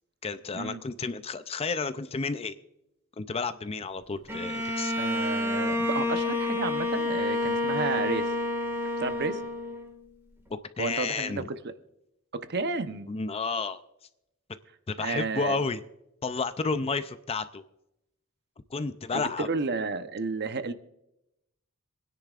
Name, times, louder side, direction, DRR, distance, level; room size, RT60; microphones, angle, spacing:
voice 1, 0.2-2.5 3.2-4.9 10.8-11.5 13.1-13.8 14.9-15.8 16.2-17.6 18.7-19.5, left 4 dB, 30° left, 0.5 m, -31 dB
Bowed string instrument, 4.3-10.0, left 2 dB, 10° right, 1.9 m, -29 dB
voice 2, 5.0-8.3 9.0-9.4 10.8-11.6 12.3-13.1 15.0-15.6 19.1-20.7, right 4 dB, 50° right, 0.8 m, -32 dB
26.5 x 10.0 x 2.5 m
head